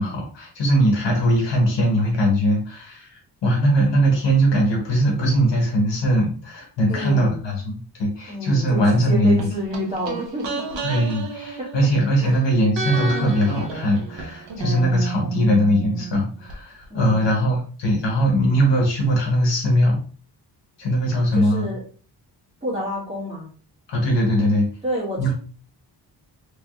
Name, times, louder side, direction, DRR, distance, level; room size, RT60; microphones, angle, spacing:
voice 1, 0.0-9.5 10.8-20.0 20.8-21.6 23.9-24.7 25.2-25.3, equal, 80° left, 0 dB, 1.3 m, -20 dB
voice 2, 6.9-7.4 8.3-11.0 11.6-11.7 12.2-12.4 14.5-14.9 16.9-17.3 21.4-21.8 22.6-23.5 24.8-25.3, equal, 15° right, -6 dB, 1.9 m, -29 dB
sound 1, 9.4-12.4 12.7-16.6 16.8-16.9, right 5 dB, 85° right, 0.9 m, -31 dB
3.4 x 3.4 x 2.4 m, 0.40 s
wide cardioid pair, 150°, 43 cm